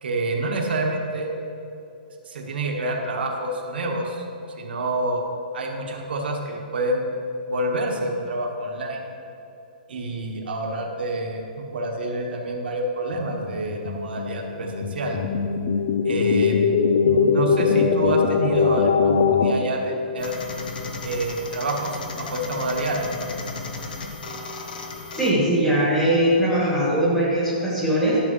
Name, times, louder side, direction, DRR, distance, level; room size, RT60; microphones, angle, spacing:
voice 1, 0.0-1.3 2.3-4.2 4.6-5.2 5.5-7.0 7.5-9.0 9.9-15.2 16.0-16.8 17.0-20.3 21.0-23.0, right 1 dB, 80° right, 1 dB, 1.5 m, -27 dB
sound 1, 13.2-19.5, left 6 dB, 35° left, 0.4 m, -21 dB
sound 2, 20.2-25.3, left 3 dB, 60° left, 1.0 m, -34 dB
voice 2, 25.1-28.2, right 1 dB, 5° left, -8 dB, 1.7 m, -20 dB
12.0 x 6.8 x 3.2 m, 2.9 s
hypercardioid pair, 175°, 5 cm